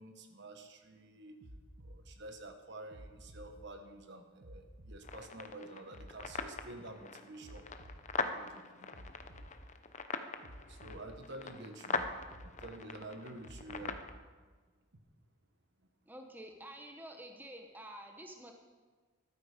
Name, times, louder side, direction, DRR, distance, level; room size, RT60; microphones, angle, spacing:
voice 1, 0.0-1.4 1.8-7.7 8.2-8.9 10.7-12.0 12.4-14.0, right 2 dB, 55° right, 6 dB, 1.4 m, -49 dB
sound 1, 1.4-2.0 2.9-3.5 4.4-5.0 5.9-6.5 7.4-8.0 8.9-9.5 10.4-11.0 11.9-12.5 13.4-14.0 14.9-15.0, equal, 75° right, 1.4 m, -52 dB
sound 2, 5.0-14.1, left 4 dB, 35° left, 0.8 m, -42 dB
voice 2, 16.1-18.5, right 1 dB, 10° right, 4 dB, 1.0 m, -49 dB
14.0 x 12.5 x 5.1 m, 1.4 s
head